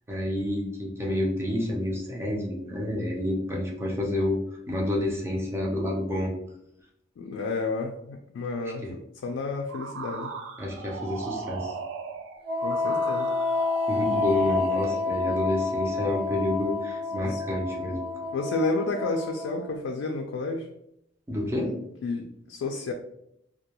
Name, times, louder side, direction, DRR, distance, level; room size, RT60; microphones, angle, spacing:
voice 1, 0.0-4.4 4.7-6.3 8.6-8.9 10.6-11.7 13.9-18.0 21.3-21.7, left 1 dB, 15° right, -2 dB, 0.5 m, -29 dB
voice 2, 7.2-10.3 12.6-13.3 17.2-17.4 18.3-20.7 22.0-22.9, left 3 dB, 90° left, 2 dB, 0.3 m, -31 dB
sound 1, 9.7-15.1, right 5 dB, 85° right, 0.3 m, -37 dB
Wind instrument woodwind instrument, 12.4-19.8, left 3 dB, 60° right, 0.8 m, -29 dB
2.2 x 2.2 x 2.9 m, 0.77 s
head